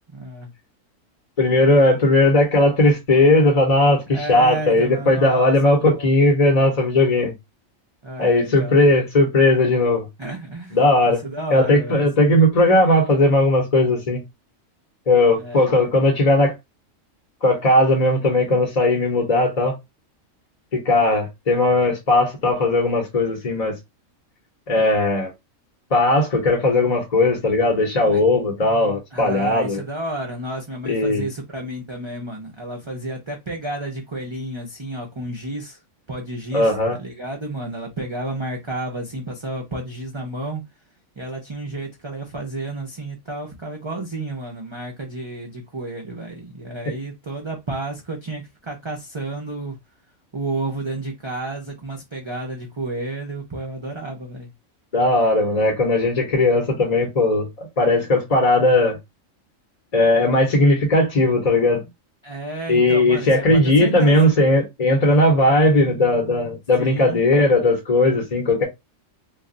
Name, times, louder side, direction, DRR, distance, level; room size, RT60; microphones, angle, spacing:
voice 1, 0.1-0.5 4.1-5.6 5.8-6.1 8.0-8.8 10.2-10.8 11.2-12.5 15.4-15.7 28.0-28.2 29.1-35.8 36.1-36.7 37.0-40.6 41.2-49.8 50.3-54.5 62.2-64.3 66.8-67.2, right 2 dB, 45° right, 0.4 m, -31 dB
voice 2, 1.4-7.3 8.2-10.1 10.7-11.2 11.5-14.2 15.1-16.5 17.4-19.8 20.7-23.8 24.7-25.3 25.9-29.8 30.8-31.3 36.5-37.0 54.9-59.0 59.9-61.9 62.7-68.6, left 2 dB, 35° left, 0.7 m, -17 dB
2.4 x 2.2 x 3.7 m
omnidirectional pair, 1.4 m